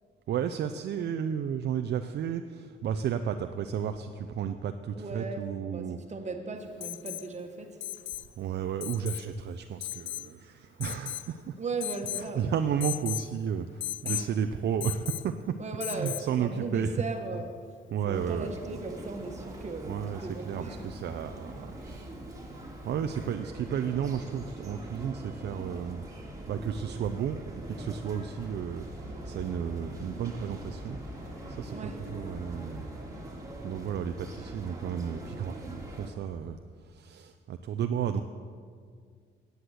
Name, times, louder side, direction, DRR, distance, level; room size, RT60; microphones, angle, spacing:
voice 1, 0.3-6.0 8.4-11.5 12.2-15.5 15.9-16.9 17.9-18.5 19.9-22.1 22.8-26.0 26.5-27.4 27.7-31.0 31.5-32.9 33.6-36.6 36.9-38.2, right 8 dB, 60° right, 8 dB, 0.5 m, -33 dB
voice 2, 4.9-7.8 11.6-12.6 14.0-14.3 15.6-17.6 18.0-20.8 31.7-32.1, right 3 dB, 35° right, 4 dB, 1.5 m, -37 dB
Alarm, 6.8-7.3 7.8-8.3 8.8-9.3 9.8-10.3 10.8-11.3 11.8-12.3 12.8-13.3 13.8-14.3 14.8-15.3 15.8-16.3 18.0-18.1, left 14 dB, 75° left, 0.5 m, -36 dB
sound 1, 18.1-36.1, right 1 dB, 15° right, 2.4 m, -43 dB
sound 2, 27.5-33.3, equal, 15° left, 3.2 m, -49 dB
10.5 x 8.1 x 7.9 m, 2.1 s
cardioid pair, 90°, 20 cm